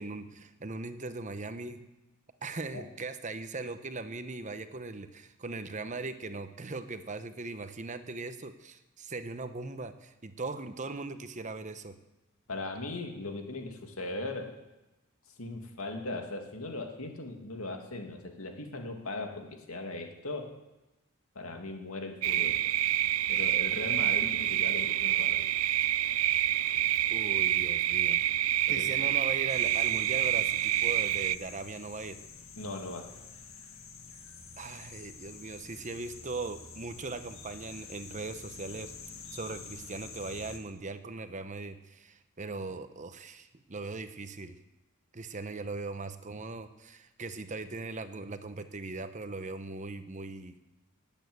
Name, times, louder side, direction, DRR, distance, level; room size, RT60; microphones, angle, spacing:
voice 1, 0.0-1.8 2.4-12.0 27.1-28.2 28.7-32.2 34.6-38.9 39.3-44.6 45.1-50.6, right 3 dB, 35° right, 10 dB, 0.9 m, -39 dB
voice 2, 12.5-14.5 15.4-20.5 21.3-22.6 23.3-25.5 28.7-28.9 32.6-33.1, left 2 dB, 85° left, 4 dB, 2.4 m, -38 dB
sound 1, 22.2-31.4, right 13 dB, 85° right, 0.5 m, -27 dB
sound 2, 29.5-40.6, left 5 dB, 70° left, 2.2 m, -48 dB
19.0 x 8.9 x 8.0 m, 1.0 s
head